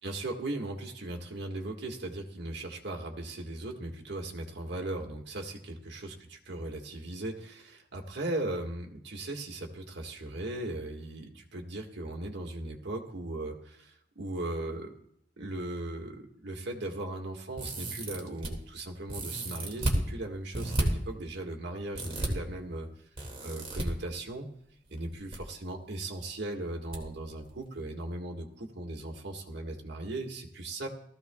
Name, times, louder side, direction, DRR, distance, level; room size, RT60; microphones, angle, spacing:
voice 1, 0.0-6.1 6.5-14.9 15.4-22.9 23.4-24.5 24.9-30.9, right 2 dB, 60° right, 1 dB, 1.8 m, -38 dB
sound 1, 17.6-18.5 19.1-20.0 20.5-20.8 21.9-22.3 23.2-23.8 25.0-25.4 25.6-25.7 26.9-27.0 27.4-27.5, right 1 dB, 30° right, 2.2 m, -32 dB
18.0 x 14.5 x 2.3 m, 0.74 s
head